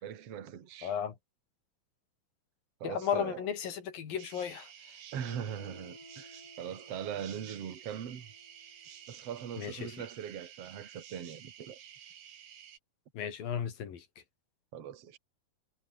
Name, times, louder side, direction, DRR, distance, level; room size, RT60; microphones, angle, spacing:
voice 1, 0.0-0.9 2.8-3.4 5.1-8.3 9.1-12.0 14.7-15.2, right 9 dB, 45° right, 2.9 m, -41 dB
voice 2, 0.8-1.2 2.8-4.7 9.6-9.9 13.1-14.1, left 8 dB, 80° left, 4.6 m, -34 dB
sound 1, 4.2-12.8, right 9 dB, 80° right, 4.0 m, -52 dB
Guitar, 5.2-9.9, left 2 dB, 25° left, 7.8 m, -57 dB
omnidirectional pair, 4.0 m